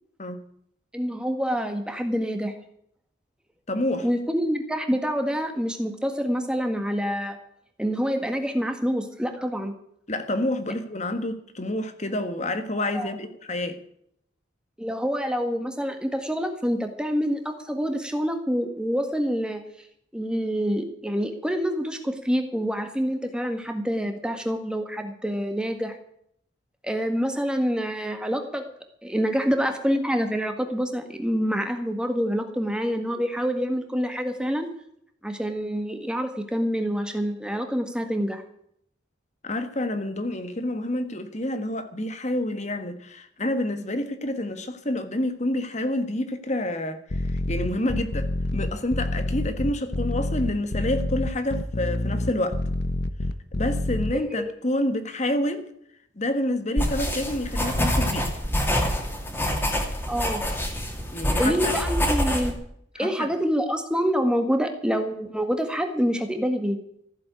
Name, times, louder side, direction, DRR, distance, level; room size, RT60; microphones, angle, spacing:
voice 1, 0.9-2.5 4.0-7.4 7.8-9.7 12.9-13.1 14.8-19.6 20.1-26.0 26.8-28.6 29.0-34.7 35.2-38.4 54.4-54.5 60.1-60.4 61.4-62.5 63.0-66.8, equal, 5° right, 1.7 m, -26 dB
voice 2, 3.7-4.1 10.1-13.8 39.4-52.6 53.5-55.7 56.1-58.3 61.1-61.7 63.0-63.3, left 1 dB, 35° left, 1.6 m, -28 dB
sound 1, 47.1-54.1, left 1 dB, 55° left, 1.0 m, -27 dB
sound 2, 56.8-62.5, equal, 10° left, 2.5 m, -26 dB
15.0 x 7.6 x 9.4 m
head